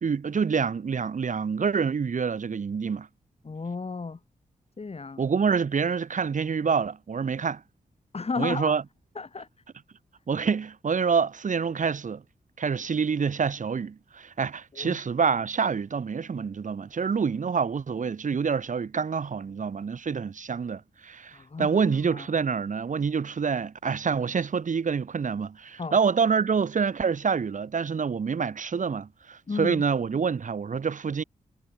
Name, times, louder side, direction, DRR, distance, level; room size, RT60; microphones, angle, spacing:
voice 1, 0.0-3.1 5.2-7.6 8.4-8.8 10.3-12.2 12.6-31.2, right 6 dB, 60° right, 3.0 m, -27 dB
voice 2, 3.4-4.2 4.8-5.2 8.1-8.7 9.2-9.5 14.7-15.0 21.3-21.7 22.0-22.3 25.8-26.0 29.5-29.8, left 4 dB, 45° left, 3.8 m, -33 dB
cardioid pair, 55°, 14 cm